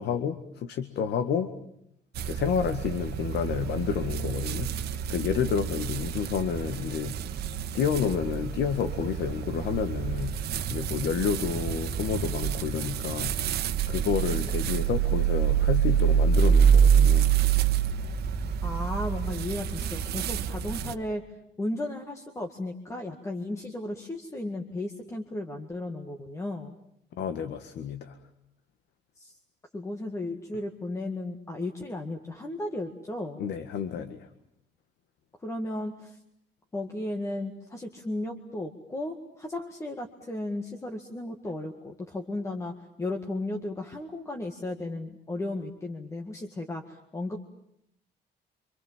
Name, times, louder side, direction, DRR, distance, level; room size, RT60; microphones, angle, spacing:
voice 1, 0.0-1.5 2.3-4.7 5.1-7.2 7.7-10.4 10.7-17.4 20.8-20.9 27.2-28.1 33.4-34.3, left 7 dB, 75° left, 9 dB, 1.9 m, -30 dB
sound 1, 2.2-20.9, right 8 dB, 65° right, 1.4 m, -26 dB
voice 2, 18.6-21.2 21.6-26.8 29.2-29.4 29.7-33.4 35.4-36.2 36.7-42.7 43.0-47.4, left 1 dB, 15° left, 3 dB, 1.9 m, -35 dB
28.5 x 26.0 x 7.5 m, 0.75 s
cardioid pair, 170°, 18 cm